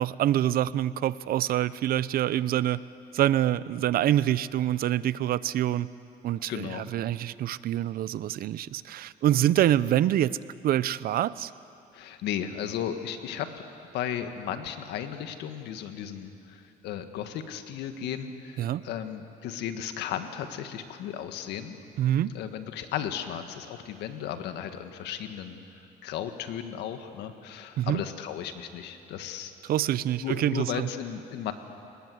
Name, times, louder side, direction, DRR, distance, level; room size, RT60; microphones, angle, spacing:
voice 1, 0.0-2.8 3.1-5.9 6.2-10.4 10.6-11.5 18.6-18.8 22.0-22.3 27.8-28.0 29.6-30.9, right 12 dB, 60° right, 17 dB, 0.7 m, -26 dB
voice 2, 6.5-6.8 11.9-13.7 13.9-21.8 22.3-29.5 30.2-31.5, left 9 dB, 85° left, 8 dB, 1.8 m, -35 dB
29.5 x 19.5 x 8.0 m, 2.6 s
cardioid pair, 110°, 17 cm